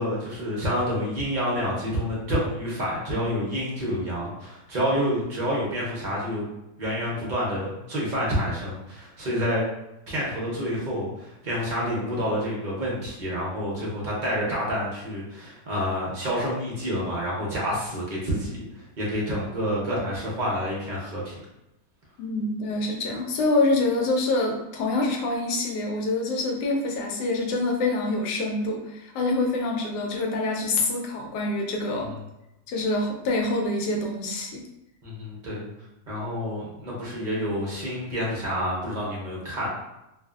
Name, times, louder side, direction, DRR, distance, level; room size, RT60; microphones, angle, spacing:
voice 1, 0.0-6.5 6.8-9.7 10.1-21.4 35.0-35.7 36.1-39.7, equal, 50° right, -5 dB, 0.5 m, -28 dB
voice 2, 22.2-32.1 32.7-34.6, left 2 dB, 90° left, 1 dB, 1.2 m, -26 dB
2.5 x 2.4 x 2.4 m, 0.91 s
omnidirectional pair, 1.7 m